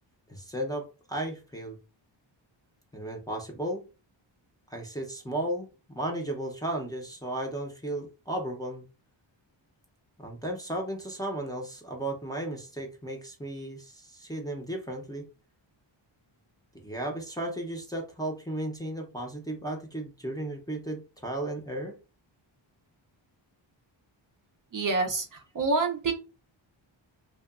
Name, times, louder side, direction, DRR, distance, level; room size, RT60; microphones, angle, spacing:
voice 1, 0.3-1.8 2.9-3.8 4.7-8.8 10.2-15.3 16.8-22.0, right 1 dB, 10° left, -1 dB, 0.5 m, -35 dB
voice 2, 24.7-26.1, right 3 dB, 45° right, 4 dB, 0.5 m, -27 dB
2.7 x 2.2 x 2.3 m, 0.32 s
wide cardioid pair, 115°, 47 cm